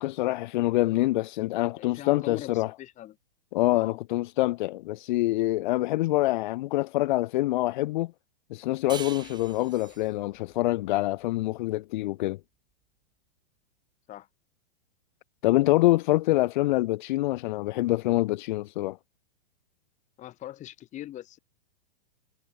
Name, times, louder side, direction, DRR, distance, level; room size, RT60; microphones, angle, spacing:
voice 1, 0.0-2.7 3.5-8.1 8.5-12.4 15.4-19.0, left 17 dB, 50° left, 1.0 m, -25 dB
voice 2, 1.7-3.2 3.7-4.0 14.1-14.3 20.2-21.4, left 13 dB, 25° left, 2.5 m, -40 dB
sound 1, 8.9-12.1, right 7 dB, 15° right, 2.7 m, -45 dB
hypercardioid pair, 145°, 30 cm